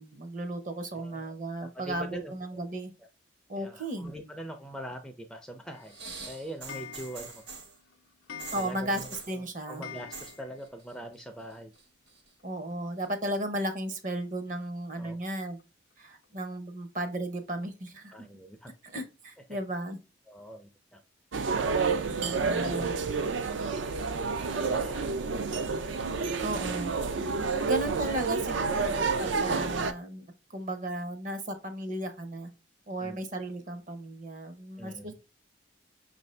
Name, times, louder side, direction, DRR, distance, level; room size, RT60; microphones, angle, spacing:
voice 1, 0.0-2.9 3.5-4.1 8.5-9.8 12.4-15.6 16.0-18.1 18.8-20.0 22.2-22.9 26.4-26.9 27.6-30.3 30.5-32.5 32.9-35.2, right 1 dB, 45° right, 7 dB, 0.7 m, -35 dB
voice 2, 0.9-1.3 1.6-2.3 3.5-5.9 6.2-7.3 8.5-11.7 15.0-15.2 18.1-18.7 20.3-21.0 24.5-25.3 33.0-33.2 34.8-35.2, equal, 5° left, 4 dB, 0.3 m, -43 dB
Clock, 5.7-10.8 11.1-11.2 11.4-11.5 11.8-11.9 13.0-13.1 13.7-13.8 14.3-14.4 15.0-15.1 15.6-15.7 16.2-16.3, left 7 dB, 90° left, 0.5 m, -47 dB
sound 1, 5.8-7.8 8.4-9.4 10.0-10.4 10.6-11.2 11.5-12.3 13.0-13.1, right 4 dB, 60° right, 1.1 m, -44 dB
sound 2, 21.3-29.9, right 5 dB, 80° right, 0.4 m, -29 dB
5.7 x 2.6 x 3.2 m, 0.29 s
head